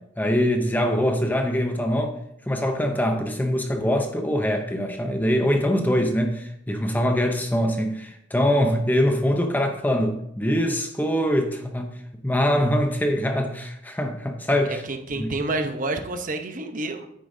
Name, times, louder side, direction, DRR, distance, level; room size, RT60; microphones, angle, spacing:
voice 1, 0.2-2.2 2.5-12.0 12.2-14.8 15.2-15.3, equal, 10° left, 5 dB, 0.7 m, -23 dB
voice 2, 14.6-17.1, right 2 dB, 40° right, 6 dB, 0.8 m, -29 dB
9.4 x 8.4 x 2.7 m, 0.77 s
head